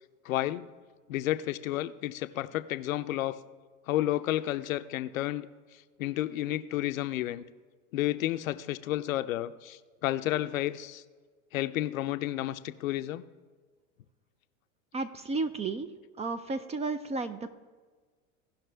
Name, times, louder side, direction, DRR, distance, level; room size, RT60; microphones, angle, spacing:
voice 1, 0.3-0.7 1.1-3.4 3.9-5.5 6.0-7.4 7.9-11.0 11.5-13.2, left 14 dB, 80° left, 11 dB, 0.6 m, -31 dB
voice 2, 14.9-15.9 16.2-17.6, right 3 dB, 15° right, 12 dB, 0.4 m, -33 dB
17.0 x 5.9 x 3.4 m, 1.4 s
hypercardioid pair, 105°, 40 cm